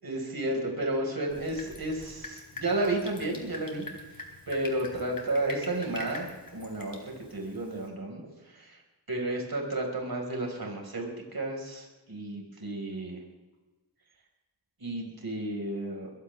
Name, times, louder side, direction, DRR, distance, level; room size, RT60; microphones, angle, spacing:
voice 1, 0.0-3.9 4.5-8.8 9.1-13.2 14.8-16.2, right 2 dB, 55° right, 0 dB, 5.2 m, -32 dB
Drip, 1.3-7.9, left 2 dB, 50° left, 3.9 m, -45 dB
22.0 x 16.5 x 3.5 m, 1.1 s
cardioid pair, 55°, 43 cm